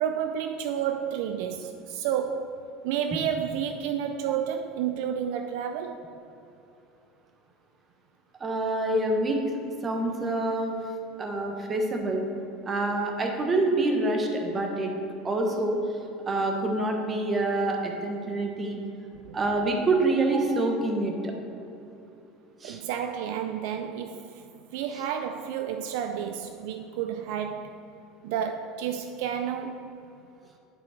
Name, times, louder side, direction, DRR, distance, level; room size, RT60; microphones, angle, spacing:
voice 1, 0.0-2.5 2.8-6.0 19.3-19.4 22.6-24.4 24.7-27.8 28.2-29.9, right 8 dB, 75° right, 7 dB, 0.4 m, -31 dB
voice 2, 8.4-9.4 9.8-10.7 11.2-12.3 12.7-14.9 15.2-15.8 16.3-18.8 19.3-21.3 22.6-22.8, right 2 dB, 25° right, 3 dB, 1.1 m, -26 dB
10.5 x 4.4 x 4.2 m, 2.8 s
supercardioid pair, 130°, 0 cm